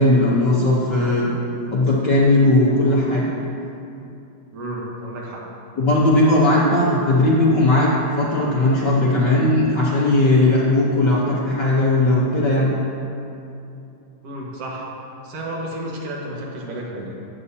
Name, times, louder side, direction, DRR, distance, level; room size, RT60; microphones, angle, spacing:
voice 1, 0.0-1.3 1.7-3.3 5.8-12.7, left 1 dB, 75° left, -6 dB, 1.0 m, -17 dB
voice 2, 4.5-5.5 14.2-14.9 15.2-17.2, right 1 dB, 60° right, -3 dB, 2.2 m, -31 dB
14.0 x 8.3 x 2.8 m, 2.7 s
omnidirectional pair, 3.4 m